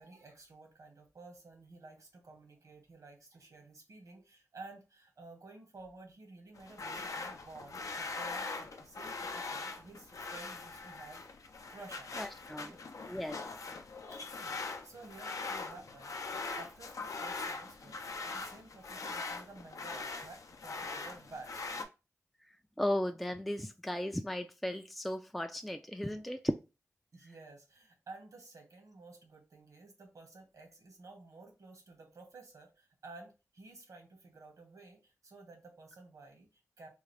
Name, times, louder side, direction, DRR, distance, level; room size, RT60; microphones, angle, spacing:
voice 1, 0.0-11.2 11.7-12.2 12.5-12.8 14.1-21.6 27.1-36.9, right 3 dB, 80° right, 1.3 m, -53 dB
sound 1, 6.5-21.8, left 3 dB, 75° left, 0.5 m, -42 dB
voice 2, 12.2-12.7 13.1-13.4 22.8-26.5, left 1 dB, ahead, 0.3 m, -35 dB
3.6 x 2.4 x 3.3 m
wide cardioid pair, 80°, 6 cm